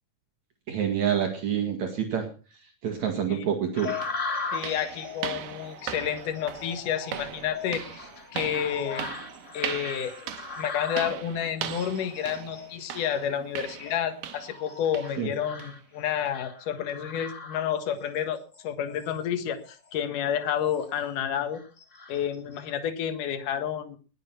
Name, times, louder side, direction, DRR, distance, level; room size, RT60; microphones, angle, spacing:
voice 1, 0.7-2.3 2.6-4.0 15.2-15.3, right 8 dB, 60° right, 3 dB, 3.1 m, -27 dB
sound 1, 3.4-3.5 4.0-14.7 14.9-15.2 15.6-15.8 16.3-16.4 16.9-17.0, right 10 dB, 80° right, 2.7 m, -39 dB
sound 2, 3.7-18.1 18.5-19.2 19.7-19.9 20.4-21.1 21.5-22.8, left 4 dB, 30° left, 1.7 m, -39 dB
voice 2, 4.5-9.0 9.5-21.6 22.1-24.0, left 9 dB, 75° left, 8 dB, 3.0 m, -30 dB
20.5 x 7.9 x 5.6 m, 0.37 s
omnidirectional pair, 3.8 m